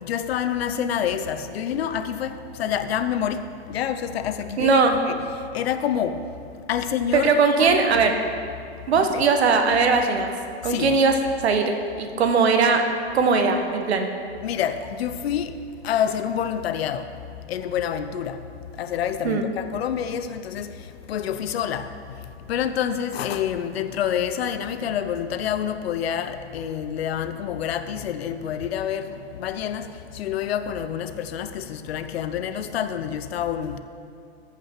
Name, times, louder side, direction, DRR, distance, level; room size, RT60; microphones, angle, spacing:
voice 1, 0.0-5.2 5.5-6.2 6.7-8.0 9.1-9.2 10.7-11.0 14.4-15.6 15.8-17.1 17.5-18.4 18.8-20.8 21.1-21.9 22.5-29.9 30.1-33.8, left 9 dB, 65° left, 0.8 m, -27 dB
voice 2, 4.6-5.0 7.1-8.1 8.9-10.3 10.6-12.9 13.1-14.1 19.2-19.5, right 4 dB, 75° right, 1.4 m, -20 dB
14.5 x 5.8 x 6.5 m
hypercardioid pair, 135°, 32 cm